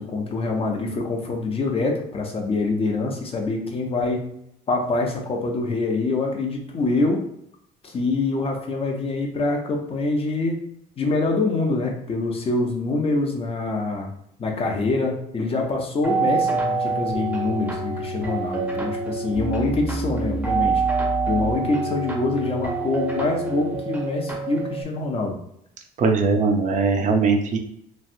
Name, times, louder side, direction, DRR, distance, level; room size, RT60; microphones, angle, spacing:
voice 1, 0.0-4.3 4.7-7.2 7.8-10.7 11.0-14.1 14.4-20.8 21.3-25.4, left 3 dB, 35° left, 1 dB, 0.7 m, -25 dB
sound 1, 16.0-24.8, right 4 dB, 10° right, 0.7 m, -26 dB
voice 2, 26.0-27.6, right 4 dB, 45° right, 4 dB, 0.6 m, -20 dB
3.1 x 2.4 x 2.6 m, 0.72 s
cardioid pair, 110°, 17 cm